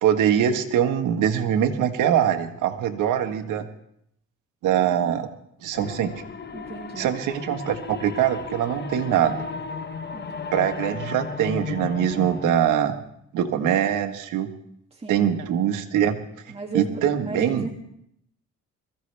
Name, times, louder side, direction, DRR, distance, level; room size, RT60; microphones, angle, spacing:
voice 1, 0.0-3.7 4.6-5.3 5.6-6.1 7.0-9.4 10.5-13.0 13.3-14.5 15.1-16.2 16.7-17.7, right 9 dB, 85° right, 7 dB, 1.5 m, -23 dB
sound 1, 5.7-12.5, left 5 dB, 35° left, 1.0 m, -34 dB
voice 2, 6.5-7.1 10.1-10.7 15.0-15.2 16.5-17.7, right 3 dB, 20° right, 1 dB, 2.4 m, -35 dB
23.0 x 15.0 x 3.4 m, 0.73 s
cardioid pair, 90°, 30 cm